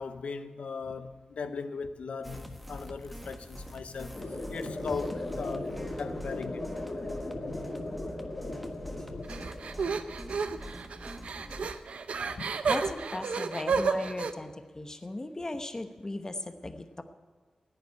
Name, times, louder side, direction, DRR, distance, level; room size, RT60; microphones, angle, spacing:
voice 1, 0.0-4.2 4.5-6.7 7.5-7.6 9.1-9.3 12.4-12.7, left 5 dB, 80° left, 0.7 m, -38 dB
sound 1, 2.2-11.7, equal, ahead, 1.3 m, -44 dB
sound 2, 4.1-10.1, left 2 dB, 50° left, 2.7 m, -37 dB
sound 3, 9.3-14.3, right 5 dB, 80° right, 0.7 m, -31 dB
voice 2, 12.7-17.0, left 2 dB, 30° left, 1.0 m, -37 dB
11.0 x 8.4 x 9.4 m
cardioid pair, 70°, 2 cm